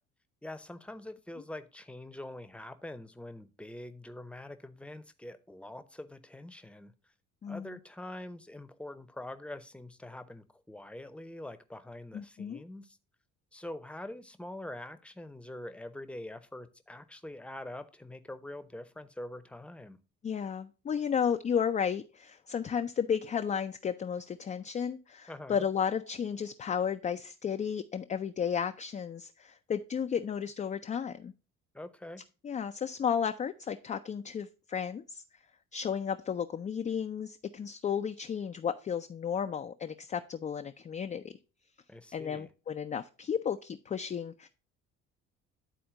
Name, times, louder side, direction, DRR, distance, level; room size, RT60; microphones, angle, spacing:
voice 1, 0.4-6.9 7.5-13.0 13.5-20.0 25.3-25.6 31.7-32.2 41.9-42.5, left 1 dB, 5° left, 0.7 m, -44 dB
voice 2, 7.4-7.8 12.1-12.6 20.2-31.3 32.4-35.2 35.7-41.3 42.1-44.5, left 7 dB, 20° left, 0.4 m, -33 dB
10.5 x 4.2 x 3.7 m
figure-of-eight pair, 50°, 40 cm